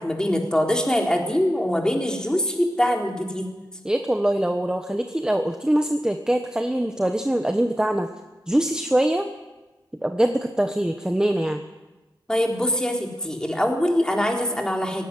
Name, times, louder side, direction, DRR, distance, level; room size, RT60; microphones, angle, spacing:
voice 1, 0.0-3.5 12.3-15.0, equal, 10° left, 1 dB, 3.8 m, -23 dB
voice 2, 3.8-8.1 8.5-9.3 10.0-11.6, right 1 dB, 10° right, 5 dB, 1.2 m, -23 dB
18.0 x 16.5 x 9.9 m, 1.1 s
wide cardioid pair, 110°, 8 cm